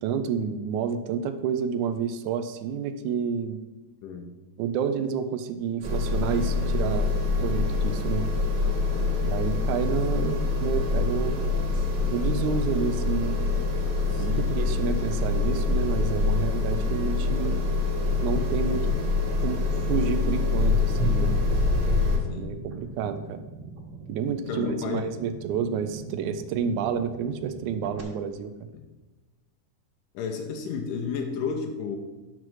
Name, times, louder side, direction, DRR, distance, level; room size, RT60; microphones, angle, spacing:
voice 1, 0.0-3.6 4.6-7.1 7.4-8.3 9.2-11.5 12.0-13.4 14.2-17.7 18.1-18.9 19.4-19.6 19.9-21.3 22.3-23.4 24.1-28.5, right 7 dB, 80° right, 10 dB, 1.8 m, -29 dB
voice 2, 4.0-4.3 8.9-9.3 9.8-9.9 14.1-14.7 22.3-22.6 24.5-25.1 28.7-28.9 30.1-32.0, left 5 dB, 85° left, 3 dB, 2.3 m, -33 dB
sound 1, 5.8-22.2, left 3 dB, 40° right, 1.8 m, -25 dB
sound 2, 18.0-28.0, right 4 dB, 55° right, 2.4 m, -43 dB
9.6 x 6.0 x 4.7 m, 1.2 s
omnidirectional pair, 3.7 m